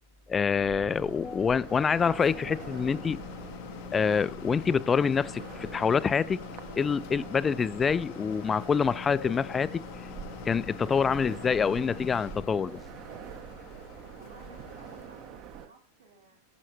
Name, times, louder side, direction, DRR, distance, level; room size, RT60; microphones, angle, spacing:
voice 1, 0.3-3.2 3.9-6.4 6.8-9.8 10.5-12.8, left 6 dB, 20° left, 0.4 m, -26 dB
sound 1, 0.5-15.7, right 8 dB, 40° right, 1.1 m, -45 dB
sound 2, 0.9-15.6, left 14 dB, 45° left, 0.7 m, -45 dB
sound 3, 1.8-10.0, left 1 dB, 90° right, 0.7 m, -51 dB
voice 2, 14.2-16.4, right 5 dB, 70° right, 3.9 m, -56 dB
12.0 x 8.1 x 2.7 m
figure-of-eight pair, 90°, 0 cm